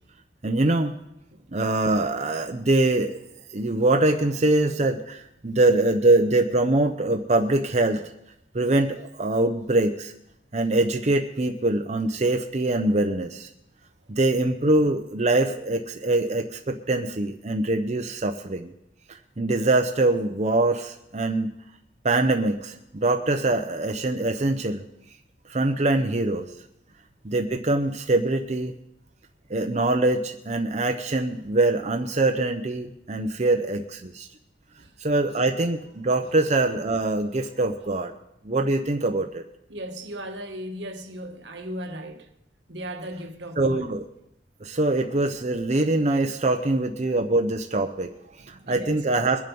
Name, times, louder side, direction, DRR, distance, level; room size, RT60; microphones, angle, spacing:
voice 1, 0.4-0.9 1.5-3.2 3.5-8.0 8.5-10.1 10.5-13.5 14.1-18.7 19.1-21.5 22.0-24.8 25.5-26.5 27.2-28.7 29.5-34.3 35.0-38.1 38.4-39.5 43.6-44.0 44.6-49.4, right 2 dB, 40° right, 0.7 m, -23 dB
voice 2, 39.7-42.3 42.7-43.9 47.0-47.2 48.4-49.0, right 1 dB, 80° right, 1.5 m, -37 dB
22.0 x 7.6 x 5.4 m
head